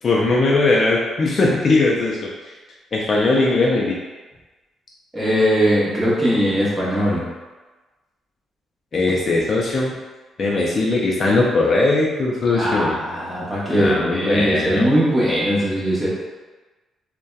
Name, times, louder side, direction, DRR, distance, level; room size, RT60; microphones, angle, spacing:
voice 1, 0.0-2.3 2.9-4.0 8.9-10.0 10.4-13.0 13.7-14.9, left 2 dB, 45° left, -3 dB, 0.4 m, -19 dB
voice 2, 5.1-7.3 12.5-16.1, equal, 15° right, -7 dB, 0.7 m, -20 dB
2.6 x 2.1 x 2.2 m, 1.2 s
cardioid pair, 90°, 0 cm